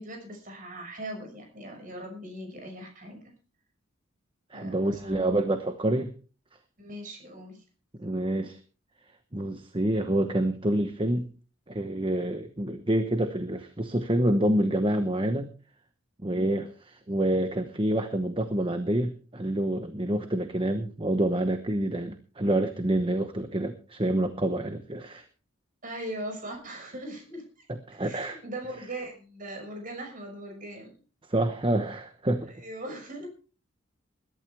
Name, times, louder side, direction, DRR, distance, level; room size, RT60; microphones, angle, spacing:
voice 1, 0.0-3.2 4.5-5.4 6.8-7.6 25.8-27.7 28.0-30.9 32.6-33.3, right 1 dB, 40° right, 3 dB, 6.0 m, -40 dB
voice 2, 4.5-6.1 8.0-8.6 9.3-11.3 11.7-15.5 16.2-25.2 27.7-28.4 31.3-32.5, right 1 dB, 25° right, 8 dB, 1.0 m, -27 dB
21.0 x 12.0 x 3.4 m, 0.37 s
head